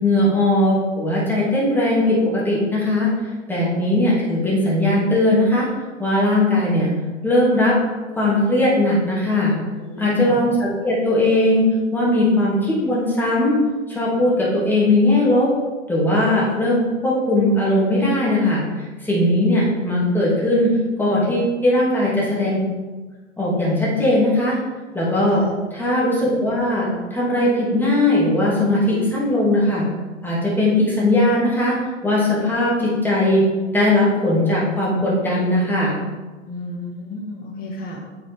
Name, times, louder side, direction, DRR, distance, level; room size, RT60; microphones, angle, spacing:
voice 1, 0.0-3.1 3.5-5.7 6.0-6.9 7.2-7.7 8.2-9.5 10.0-11.6 11.9-13.6 13.9-15.5 15.9-18.6 19.0-20.7 21.0-22.6 23.4-24.6 24.9-25.4 25.7-29.8 30.2-31.8 32.0-33.4 33.7-35.9, left 1 dB, 5° left, -6 dB, 2.9 m, -19 dB
voice 2, 9.8-10.4 25.0-25.5 36.5-38.0, left 2 dB, 20° left, 0 dB, 2.0 m, -32 dB
8.4 x 7.2 x 3.8 m, 1.3 s
figure-of-eight pair, 105°, 39 cm